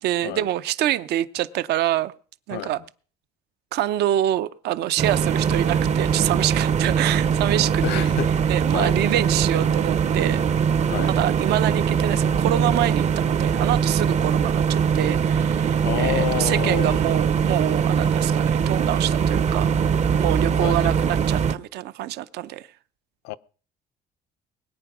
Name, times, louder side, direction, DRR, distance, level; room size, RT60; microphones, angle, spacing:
voice 1, 0.0-2.1 2.5-2.8 3.7-8.2 8.5-10.4 11.0-19.8 20.2-22.7, right 13 dB, 75° right, 0.7 m, -26 dB
sound 1, 5.0-21.6, right 7 dB, 40° right, 0.7 m, -22 dB
voice 2, 7.8-8.3 8.7-9.0 10.9-11.1 15.8-17.0 20.6-20.9 23.2-23.4, left 16 dB, 90° left, 0.6 m, -28 dB
21.0 x 9.4 x 6.1 m
cardioid pair, 110°, 17 cm